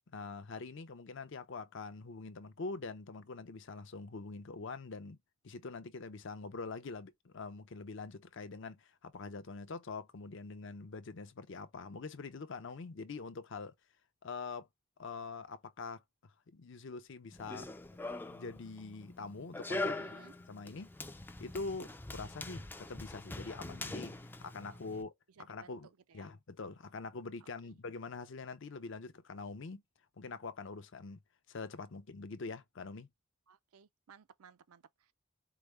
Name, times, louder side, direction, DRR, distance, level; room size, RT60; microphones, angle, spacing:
voice 1, 0.1-5.2 5.4-13.7 14.2-14.7 15.0-17.7 18.3-20.0 20.5-20.9 21.4-25.1 25.5-25.9 26.1-29.8 30.2-31.2 31.5-33.1, left 4 dB, 55° left, 0.6 m, -44 dB
Run, 17.3-25.0, left 2 dB, 10° left, 0.3 m, -43 dB
voice 2, 19.9-20.4 24.7-25.0 25.4-26.3 27.4-27.8 33.5-35.1, right 7 dB, 85° right, 0.5 m, -60 dB
4.8 x 2.1 x 3.1 m
head